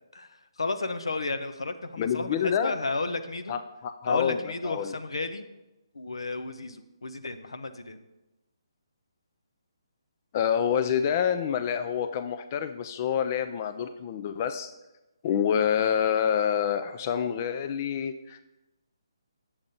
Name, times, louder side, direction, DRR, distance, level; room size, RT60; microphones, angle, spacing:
voice 1, 0.1-3.6 4.1-5.4 5.9-8.0, left 3 dB, 85° left, 10 dB, 0.6 m, -33 dB
voice 2, 2.0-2.7 3.5-4.9 10.3-14.7 15.2-18.4, left 8 dB, 30° left, 10 dB, 0.3 m, -27 dB
8.4 x 7.1 x 2.6 m, 1.0 s
hypercardioid pair, 155°, 3 cm